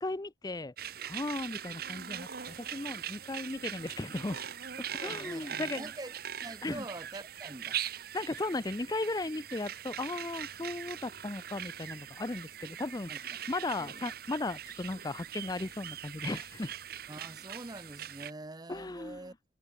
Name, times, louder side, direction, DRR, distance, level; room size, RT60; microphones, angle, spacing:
voice 1, 0.0-0.7 1.0-4.4 4.8-5.9 6.6-6.8 8.1-16.7 18.7-19.3, left 2 dB, 20° left, 0.5 m, -36 dB
sound 1, 0.8-18.3, right 10 dB, 55° right, 1.2 m, -41 dB
voice 2, 5.0-6.1 6.4-7.8 12.6-12.7 13.1-13.2 13.8-14.0 17.1-19.4, right 2 dB, 20° right, 0.8 m, -45 dB
head